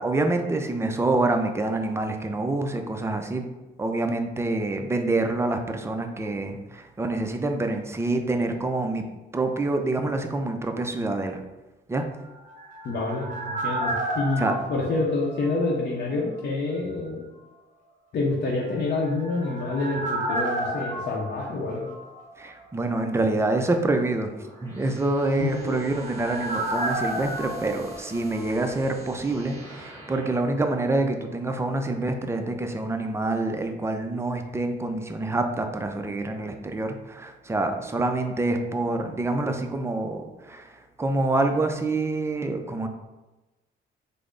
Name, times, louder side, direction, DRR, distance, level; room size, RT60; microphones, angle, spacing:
voice 1, 0.0-3.5 3.8-9.0 9.3-11.4 11.9-12.1 14.4-14.5 22.4-42.9, right 2 dB, 15° right, 5 dB, 0.4 m, -26 dB
sound 1, 12.2-16.1 16.3-16.4 18.8-22.6 22.8-22.9 25.2-29.0 29.3-29.4, right 1 dB, 40° right, 0.7 m, -32 dB
voice 2, 12.8-17.2 18.1-21.9 25.4-25.7, left 3 dB, 55° left, -4 dB, 0.6 m, -27 dB
sound 2, 24.3-30.7, right 1 dB, 15° left, 0.9 m, -47 dB
3.3 x 2.0 x 3.7 m, 1.1 s
cardioid pair, 90°, 20 cm